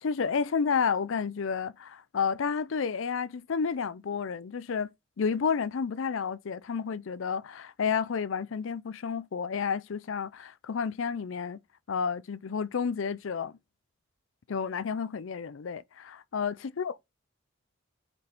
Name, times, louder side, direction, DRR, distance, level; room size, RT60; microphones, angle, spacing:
voice 1, 0.0-4.9 5.2-11.6 11.9-13.6 14.5-17.0, left 6 dB, 70° left, 0.5 m, -31 dB
9.6 x 4.2 x 4.4 m
head